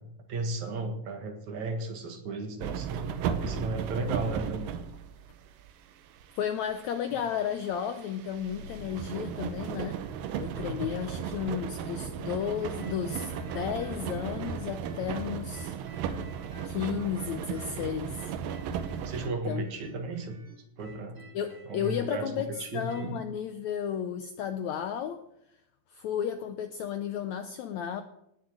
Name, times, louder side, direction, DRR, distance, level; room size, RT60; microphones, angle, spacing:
voice 1, 0.0-4.7 10.5-10.9 19.0-20.4 20.8-21.2 21.7-23.2, right 3 dB, 60° right, 5 dB, 2.8 m, -35 dB
sound 1, 2.6-19.3, right 8 dB, 80° right, 2.6 m, -36 dB
voice 2, 6.3-10.0 10.4-15.7 16.6-18.3 19.2-19.6 21.3-25.2 25.9-28.0, left 8 dB, 80° left, 8 dB, 1.7 m, -33 dB
sound 2, 12.8-16.8 17.1-23.1, right 1 dB, 20° right, 2.8 m, -52 dB
18.0 x 7.1 x 7.6 m, 0.79 s
omnidirectional pair, 4.1 m